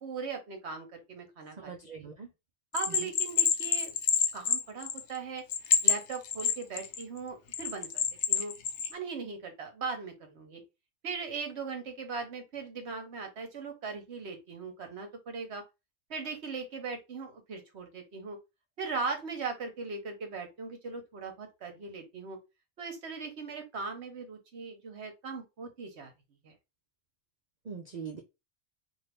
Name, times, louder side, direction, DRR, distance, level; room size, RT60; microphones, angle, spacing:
voice 1, 0.0-1.7 2.0-2.1 2.7-3.9 4.3-5.4 5.8-8.5 8.9-10.6 11.0-15.6 16.1-18.4 18.8-22.4 22.8-26.1 26.4-26.5, right 4 dB, 60° right, 1.1 m, -39 dB
voice 2, 1.6-2.3 3.0-3.1 27.7-28.2, right 6 dB, 85° right, 0.3 m, -42 dB
Bell, 2.7-5.2 5.5-7.0 7.5-8.9, left 8 dB, 70° left, 0.8 m, -27 dB
2.7 x 2.6 x 3.3 m
omnidirectional pair, 1.3 m